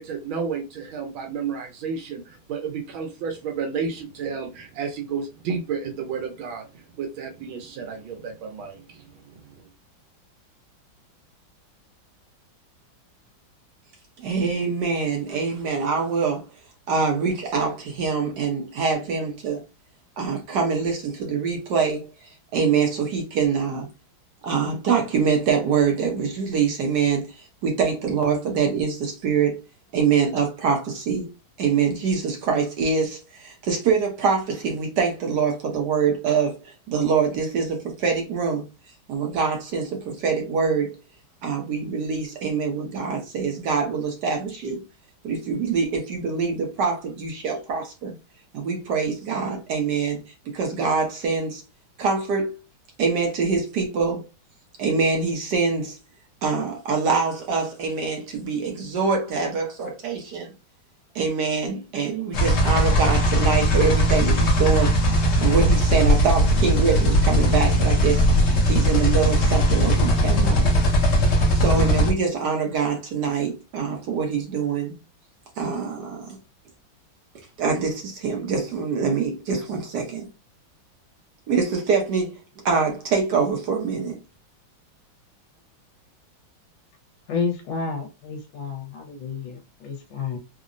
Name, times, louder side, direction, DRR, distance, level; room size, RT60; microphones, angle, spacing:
voice 1, 0.0-9.7, right 6 dB, 85° right, 1.5 m, -32 dB
voice 2, 14.2-16.5 16.9-19.6 20.2-22.1 22.5-23.9 24.4-27.3 27.6-29.6 29.9-31.3 31.6-38.6 39.1-41.0 41.4-44.8 45.2-48.1 48.5-50.2 50.5-51.6 52.0-52.5 53.0-54.2 54.8-56.0 56.4-60.5 61.1-64.9 65.4-68.2 68.7-70.7 71.0-71.1 71.5-74.9 75.6-76.3 77.6-80.3 81.5-82.4 82.6-84.2, right 5 dB, 65° right, 1.2 m, -24 dB
sound 1, 62.3-72.1, equal, 60° left, 0.8 m, -19 dB
voice 3, 87.3-90.4, left 5 dB, 80° left, 1.4 m, -30 dB
3.6 x 2.0 x 2.5 m
omnidirectional pair, 2.2 m